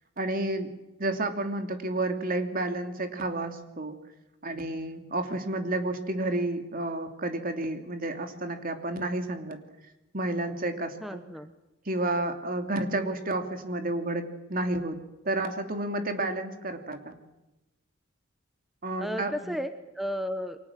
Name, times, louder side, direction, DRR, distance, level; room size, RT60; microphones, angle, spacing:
voice 1, 0.2-0.7 1.0-4.0 4.4-9.6 10.1-11.2 11.9-14.2 14.5-15.0 15.2-17.2 18.8-19.5, right 2 dB, 45° right, 6 dB, 3.0 m, -31 dB
voice 2, 11.0-11.5 19.0-20.6, equal, ahead, 8 dB, 1.0 m, -33 dB
29.5 x 24.0 x 7.6 m, 0.98 s
head